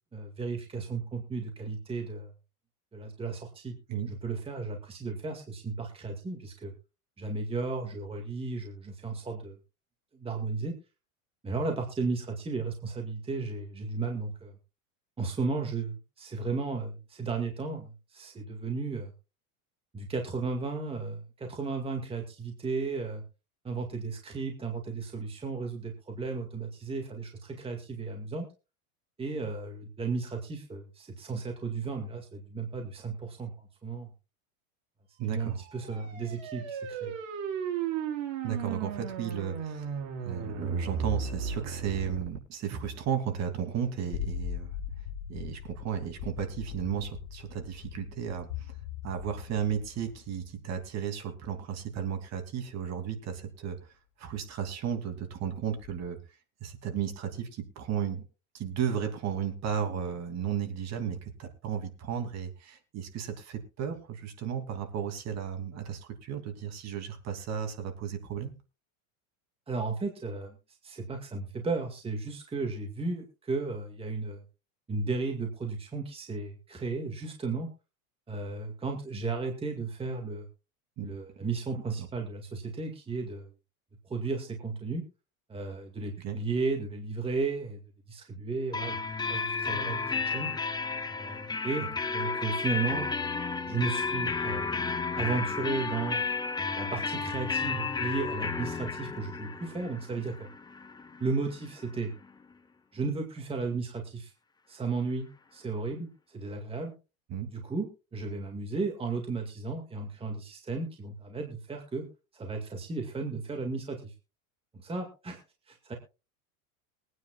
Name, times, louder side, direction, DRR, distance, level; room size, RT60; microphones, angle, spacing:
voice 1, 0.1-2.3 2.9-3.8 4.1-6.7 7.2-9.6 10.1-10.7 11.4-14.5 15.2-19.1 19.9-23.2 23.6-28.5 29.2-33.5 33.8-34.1 35.3-37.1 69.7-70.5 70.8-74.4 74.9-77.7 78.3-80.5 81.0-83.5 84.1-85.0 85.5-87.8 88.1-90.5 91.1-91.9 92.1-93.1 93.7-94.7 95.2-96.2 96.7-100.3 101.2-102.1 102.9-104.3 104.7-106.9 107.5-112.0 112.3-114.1 114.8-115.4 115.7-115.9, right 4 dB, 15° right, 3 dB, 2.0 m, -34 dB
voice 2, 35.2-35.6 38.4-40.0 40.2-44.7 45.3-48.7 49.0-53.8 54.2-56.2 56.6-58.2 58.5-68.5 81.0-81.1 81.4-81.5 82.0-82.1 86.2-86.4 107.3-107.5, right 8 dB, 35° right, 6 dB, 2.9 m, -34 dB
sound 1, 35.5-42.4, right 7 dB, 70° right, 5.1 m, -35 dB
sound 2, 44.1-50.9 52.8-52.9 55.8-56.1, left 9 dB, 65° left, 1.3 m, -40 dB
sound 3, 88.7-102.3, left 4 dB, 10° left, 0.9 m, -33 dB
22.5 x 9.6 x 2.4 m, 0.30 s
supercardioid pair, 135°, 43 cm